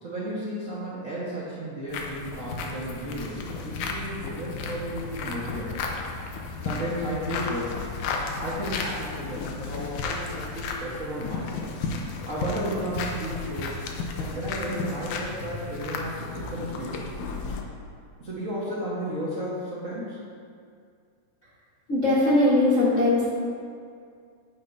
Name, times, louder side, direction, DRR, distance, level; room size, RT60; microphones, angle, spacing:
voice 1, 0.0-5.8 6.6-7.9 8.3-11.7 12.3-13.7 14.2-17.1 18.2-20.2, equal, 60° right, -8 dB, 0.8 m, -33 dB
sound 1, 1.9-17.6, left 4 dB, 80° left, 2.2 m, -33 dB
voice 2, 21.9-23.3, left 2 dB, 45° left, -9 dB, 1.0 m, -20 dB
10.0 x 9.5 x 2.7 m, 2.3 s
omnidirectional pair, 3.6 m